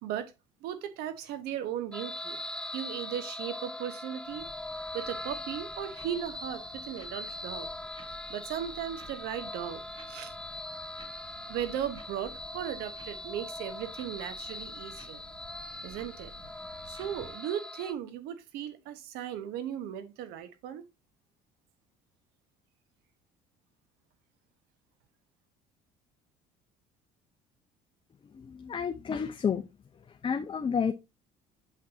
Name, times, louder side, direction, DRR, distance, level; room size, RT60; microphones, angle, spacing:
voice 1, 0.0-0.3 0.6-2.4 2.7-4.4 4.9-7.7 8.3-9.8 10.1-10.3 11.5-15.2 15.8-16.3 16.9-20.8, right 10 dB, 75° right, 1.1 m, -37 dB
sound 1, 1.9-17.9, left 1 dB, 5° left, 0.5 m, -41 dB
sound 2, 4.3-17.4, equal, 35° right, 4.9 m, -53 dB
voice 2, 28.3-29.6 30.1-30.9, left 6 dB, 35° left, 0.7 m, -30 dB
7.4 x 5.9 x 2.7 m
supercardioid pair, 70°, 16 cm